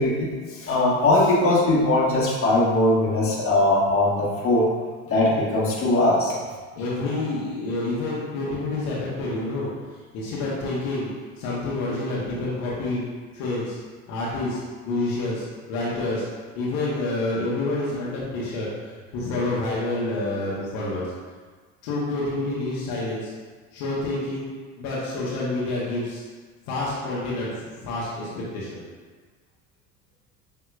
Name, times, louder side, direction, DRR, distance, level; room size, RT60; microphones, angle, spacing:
voice 1, 0.0-4.7 5.1-6.4, left 2 dB, 35° left, -5 dB, 1.4 m, -20 dB
voice 2, 6.8-9.7 10.1-11.1 11.4-13.0 13.3-13.8 14.1-16.2 16.6-18.7 19.1-21.0 21.8-23.3 23.7-24.4 24.8-26.2 26.7-28.8, left 2 dB, 65° left, -7 dB, 1.2 m, -28 dB
6.7 x 2.8 x 2.4 m, 1.5 s
hypercardioid pair, 75°, 40 cm